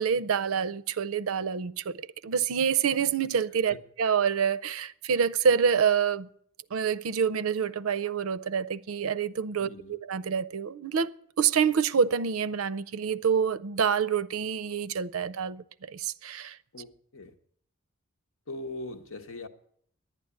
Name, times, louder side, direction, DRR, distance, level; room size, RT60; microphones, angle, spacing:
voice 1, 0.0-6.3 6.7-11.1 11.4-16.6, right 7 dB, 85° right, 0.5 m, -27 dB
voice 2, 9.6-10.0 16.7-17.3 18.5-19.5, left 2 dB, 70° left, 1.1 m, -40 dB
11.5 x 9.2 x 9.6 m
head